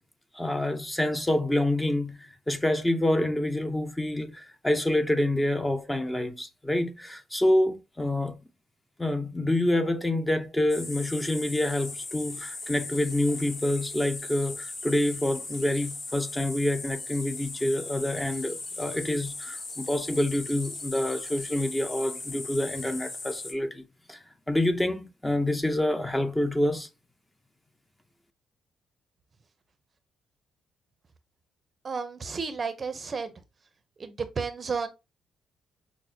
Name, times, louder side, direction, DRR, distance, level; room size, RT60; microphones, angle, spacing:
voice 1, 0.3-8.3 9.0-23.8 24.1-24.2 24.5-26.9, left 1 dB, 10° left, 0.6 m, -27 dB
sound 1, 10.7-23.5, left 3 dB, 45° left, 1.2 m, -38 dB
voice 2, 31.8-33.3 34.0-34.9, right 5 dB, 35° right, 0.6 m, -32 dB
5.9 x 2.0 x 2.7 m
cardioid pair, 90°, 0 cm